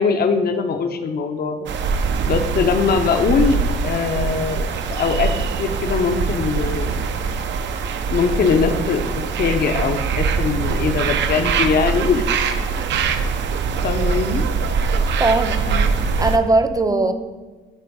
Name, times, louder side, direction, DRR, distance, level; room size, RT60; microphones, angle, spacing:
voice 1, 0.0-1.6 2.3-5.3 5.6-7.1 8.1-9.0 9.4-12.3 13.0-13.2 13.8-14.4 15.7-15.9 16.9-17.1, left 5 dB, 50° left, 6 dB, 0.7 m, -21 dB
sound 1, 1.7-16.4, right 5 dB, 65° right, 0.6 m, -22 dB
voice 2, 14.9-15.6 16.2-17.1, right 3 dB, 20° right, 9 dB, 0.5 m, -19 dB
9.0 x 3.4 x 4.6 m, 1.3 s
cardioid pair, 90°, 20 cm